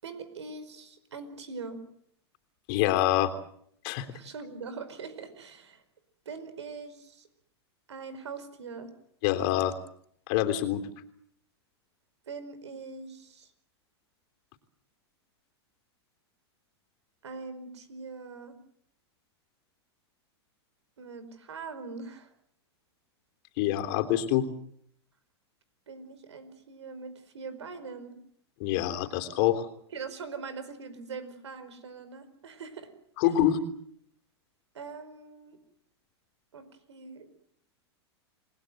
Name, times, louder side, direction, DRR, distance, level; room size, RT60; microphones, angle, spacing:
voice 1, 0.0-1.8 4.1-5.8 6.2-7.3 7.9-8.9 12.3-13.5 17.2-18.6 21.0-22.3 25.9-28.1 29.9-32.9 34.7-35.6 36.5-37.3, right 4 dB, 90° right, 12 dB, 4.9 m, -42 dB
voice 2, 2.7-3.3 3.8-4.1 9.2-9.8 10.3-10.8 23.6-24.5 28.6-29.7 33.2-33.6, left 12 dB, 55° left, 6 dB, 3.3 m, -25 dB
29.0 x 20.5 x 7.9 m, 0.67 s
hypercardioid pair, 115°, 14 cm